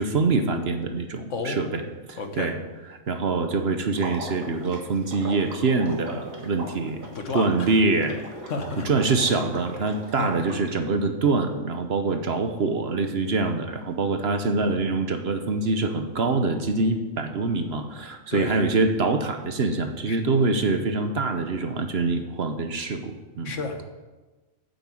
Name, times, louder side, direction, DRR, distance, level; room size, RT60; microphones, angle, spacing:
voice 1, 0.0-1.8 2.1-2.6 3.1-7.0 7.3-8.2 8.8-23.5, right 3 dB, 55° right, 7 dB, 1.1 m, -25 dB
voice 2, 1.3-1.7 2.2-2.5 7.1-7.7 8.5-8.9 10.2-10.3 18.3-18.6 20.1-20.2 23.4-23.9, left 3 dB, 70° left, 6 dB, 1.5 m, -31 dB
Water / Liquid, 3.9-10.7, right 1 dB, 85° right, 2.3 m, -39 dB
9.3 x 7.3 x 7.7 m, 1.2 s
omnidirectional pair, 1.4 m